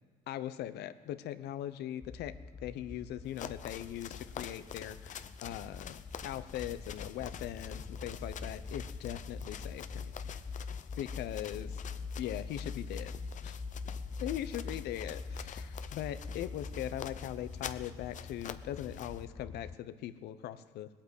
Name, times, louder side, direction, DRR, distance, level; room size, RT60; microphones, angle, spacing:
voice 1, 0.3-2.3 2.6-10.1 11.0-11.7 12.2-13.1 13.4-13.6 14.2-20.9, left 12 dB, 75° left, 13 dB, 0.8 m, -40 dB
sound 1, 2.0-19.8, left 4 dB, 15° left, 0.4 m, -44 dB
sound 2, 3.2-19.2, left 9 dB, 45° left, 0.7 m, -48 dB
19.5 x 8.8 x 8.1 m, 1.5 s
cardioid pair, 110°, 17 cm